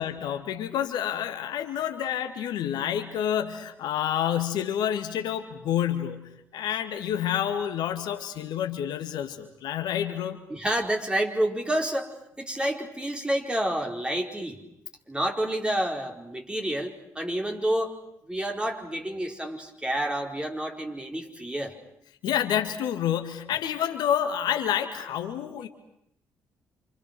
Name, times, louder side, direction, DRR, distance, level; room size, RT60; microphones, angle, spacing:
voice 1, 0.0-10.4 22.2-25.7, left 10 dB, 75° left, 6 dB, 2.1 m, -28 dB
voice 2, 10.5-12.1 12.4-14.6 15.1-17.9 18.3-21.7, right 1 dB, 15° right, 2 dB, 4.9 m, -29 dB
28.0 x 27.0 x 6.2 m, 0.76 s
hypercardioid pair, 50°, 7 cm